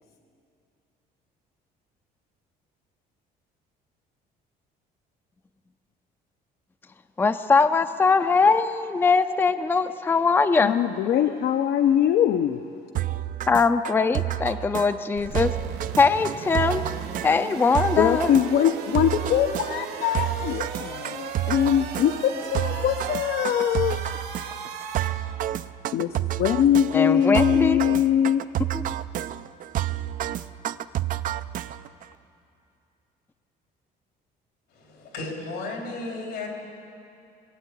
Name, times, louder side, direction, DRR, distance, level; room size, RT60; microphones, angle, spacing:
voice 1, 7.2-10.7 13.5-15.5 16.0-16.8 17.2-18.4 26.9-27.8 28.7-28.8, left 4 dB, 15° left, 10 dB, 0.4 m, -21 dB
voice 2, 10.6-12.6 18.0-24.0 25.9-28.4, left 9 dB, 70° left, 7 dB, 0.6 m, -22 dB
sound 1, 13.0-32.1, right 13 dB, 55° right, 0.4 m, -30 dB
sound 2, 15.1-25.1, right 6 dB, 70° right, 1.6 m, -37 dB
voice 3, 34.7-36.5, left 3 dB, 90° left, 0 dB, 3.3 m, -34 dB
21.5 x 8.3 x 8.2 m, 2.7 s
cardioid pair, 110°, 17 cm